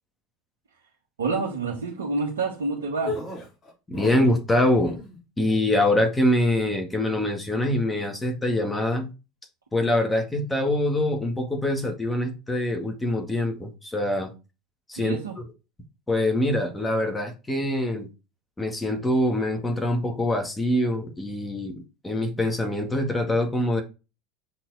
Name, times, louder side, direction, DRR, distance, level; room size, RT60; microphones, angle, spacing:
voice 1, 1.2-3.1 15.0-15.4, right 3 dB, 85° right, -3 dB, 1.7 m, -28 dB
sound 1, 3.0-4.4 4.7-5.2, left 3 dB, 30° left, 3.0 m, -34 dB
voice 2, 3.9-5.0 5.4-9.1 9.7-14.3 14.9-15.2 16.1-18.1 18.6-23.8, left 1 dB, 15° left, 4 dB, 1.9 m, -24 dB
7.6 x 4.2 x 4.0 m, 0.29 s
hypercardioid pair, 80°, 0 cm